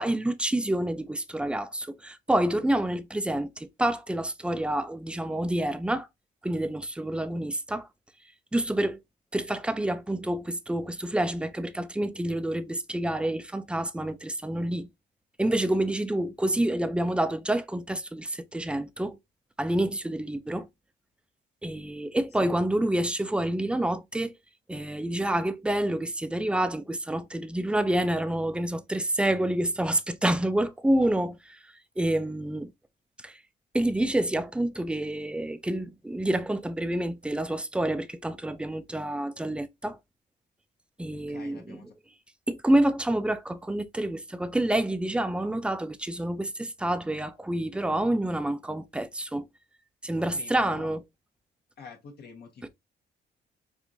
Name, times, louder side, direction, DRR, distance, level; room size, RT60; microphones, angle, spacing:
voice 1, 0.0-6.1 6.4-7.9 8.5-9.0 9.3-14.9 15.4-19.2 19.6-20.7 21.6-24.3 24.7-32.7 33.2-33.4 33.7-40.0 41.0-41.8 42.5-49.5 50.0-51.0, right 1 dB, 5° right, 0.4 m, -28 dB
voice 2, 41.1-41.9 50.2-50.9 51.8-52.7, left 5 dB, 55° left, 1.0 m, -46 dB
4.4 x 2.4 x 2.6 m
cardioid pair, 90°, 20 cm